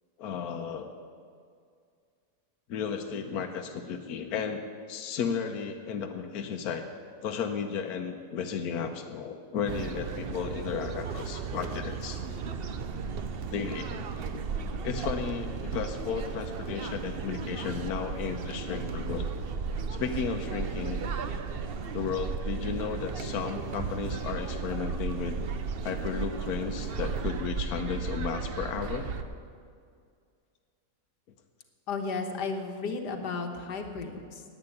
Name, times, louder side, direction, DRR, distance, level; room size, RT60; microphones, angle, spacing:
voice 1, 0.2-0.9 2.7-6.9 7.2-12.2 13.5-14.4 14.8-19.3 19.9-21.0 21.9-25.4 25.8-29.1, left 6 dB, 70° left, 5 dB, 1.3 m, -34 dB
sound 1, 9.7-29.2, right 5 dB, 55° right, 0.7 m, -35 dB
voice 2, 31.9-34.4, left 4 dB, 90° left, 4 dB, 1.8 m, -34 dB
11.0 x 8.8 x 9.7 m, 2.2 s
omnidirectional pair, 1.7 m